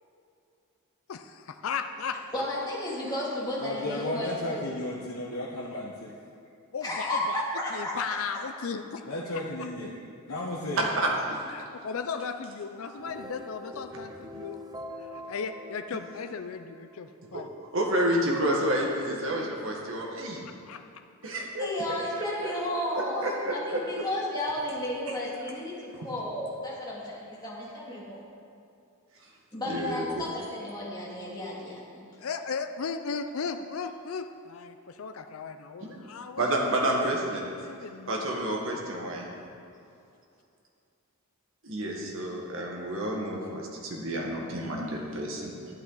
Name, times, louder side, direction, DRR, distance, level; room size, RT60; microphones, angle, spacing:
voice 1, 1.1-2.2 6.7-7.4 7.7-9.0 11.5-14.6 15.0-17.5 19.3-19.4 20.4-21.0 23.2-23.6 32.2-37.2 37.6-38.3, left 5 dB, 65° left, 7 dB, 0.4 m, -36 dB
voice 2, 2.3-4.7 6.8-8.1 21.6-28.2 29.5-32.0, left 1 dB, 20° left, -7 dB, 2.3 m, -33 dB
voice 3, 3.6-5.9 9.1-9.9 10.3-10.9, left 1 dB, 85° left, -5 dB, 1.1 m, -34 dB
voice 4, 10.8-11.4 17.3-17.4 17.7-20.4 21.2-21.7 22.4-22.5 22.9-24.1 26.0-26.1 29.6-30.2 35.8-36.0 36.4-37.5 38.1-39.3 41.6-45.5, right 1 dB, 65° right, -1 dB, 1.6 m, -29 dB
sound 1, 12.8-17.1, left 1 dB, 15° right, 0.5 m, -44 dB
11.5 x 8.8 x 3.9 m, 2.5 s
head